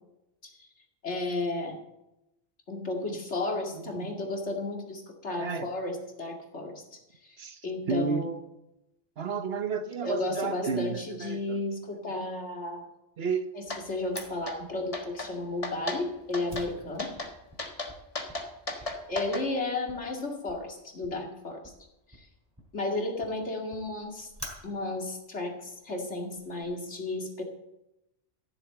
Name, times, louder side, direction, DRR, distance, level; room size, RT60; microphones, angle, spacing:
voice 1, 1.0-1.8 2.7-8.3 10.0-12.9 13.5-17.1 18.7-21.6 22.1-22.3 22.7-24.3 24.6-27.4, left 2 dB, 70° left, 1 dB, 2.6 m, -33 dB
voice 2, 5.4-5.7 7.4-7.6 7.9-8.2 9.2-11.6 13.2-13.5, right 5 dB, 60° right, 10 dB, 1.1 m, -31 dB
sound 1, 13.7-13.8 14.2-14.6 14.9-15.3 15.6-16.0 16.3-16.7 17.0-17.3 17.6-19.4, left 2 dB, 30° left, 1.6 m, -35 dB
Fire, 14.1-26.6, right 1 dB, 15° right, 3.2 m, -50 dB
14.5 x 7.6 x 7.8 m, 0.90 s
omnidirectional pair, 1.2 m